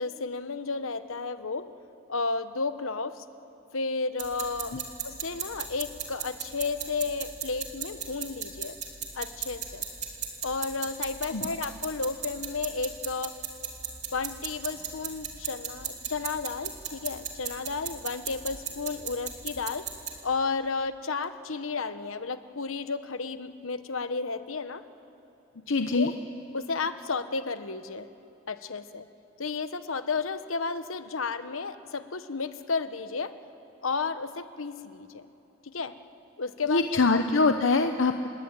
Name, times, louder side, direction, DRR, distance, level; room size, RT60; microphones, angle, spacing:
voice 1, 0.0-1.7 2.1-3.2 3.7-4.8 5.0-8.8 9.1-9.8 10.4-13.3 14.1-19.9 20.2-24.8 25.9-26.1 26.5-28.1 28.5-29.1 29.4-33.3 33.8-35.2 35.6-36.0 36.4-37.2, left 4 dB, 90° left, 11 dB, 1.1 m, -32 dB
sound 1, 4.2-20.1, right 6 dB, 35° right, 3.2 m, -37 dB
voice 2, 25.7-26.1 36.7-38.3, left 3 dB, 65° left, 6 dB, 0.9 m, -24 dB
28.5 x 21.5 x 8.9 m, 2.9 s
head